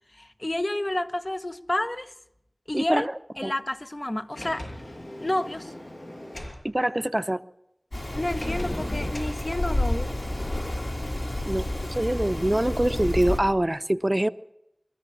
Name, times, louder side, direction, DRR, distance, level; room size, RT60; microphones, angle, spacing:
voice 1, 0.1-2.1 2.7-3.1 3.4-4.7 5.2-5.7 8.1-10.2, left 1 dB, 40° left, 1.1 m, -30 dB
voice 2, 2.7-3.1 3.4-3.5 6.6-7.4 11.5-11.6 11.9-14.3, right 1 dB, 30° right, 0.8 m, -24 dB
Sliding door, 4.3-6.6 8.4-9.4, left 1 dB, 85° left, 6.2 m, -38 dB
Rain, 7.9-13.4, left 1 dB, 65° left, 5.1 m, -29 dB
23.0 x 14.0 x 8.6 m
wide cardioid pair, 45°, 0 cm